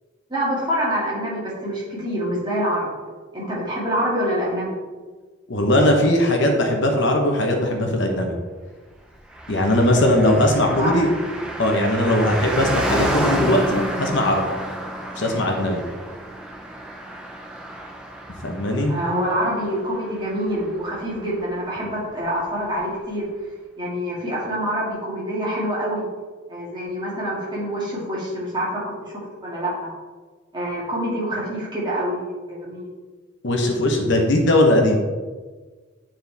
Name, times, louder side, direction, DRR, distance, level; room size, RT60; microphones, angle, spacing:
voice 1, 0.3-4.7 10.7-11.1 18.9-23.3 23.8-26.1 26.5-29.9 30.5-32.9, equal, 20° right, -7 dB, 2.3 m, -26 dB
voice 2, 5.5-8.3 9.5-11.1 11.6-14.4 15.2-15.8 18.4-18.9 33.4-35.0, left 1 dB, 60° left, 2 dB, 1.0 m, -19 dB
Car passing by, 9.3-21.2 21.4-21.5, right 1 dB, 5° right, 0.7 m, -30 dB
9.4 x 4.4 x 3.4 m, 1.4 s
head